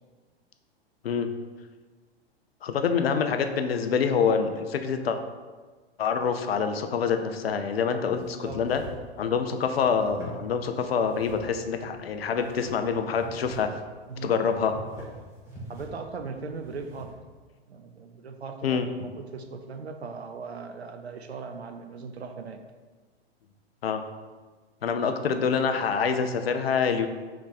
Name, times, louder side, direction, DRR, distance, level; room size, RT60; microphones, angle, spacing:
voice 1, 2.6-5.2 6.0-8.8 9.2-13.7 14.2-14.7 18.6-18.9 23.8-24.0 24.8-27.1, left 6 dB, 70° left, 7 dB, 0.5 m, -26 dB
sound 1, 8.1-17.1, right 1 dB, 10° right, 0.9 m, -45 dB
voice 2, 8.2-8.6 14.1-14.4 15.7-17.2 17.7-22.6, right 4 dB, 85° right, 6 dB, 0.5 m, -39 dB
3.3 x 3.2 x 4.1 m, 1.4 s
figure-of-eight pair, 100°, 32 cm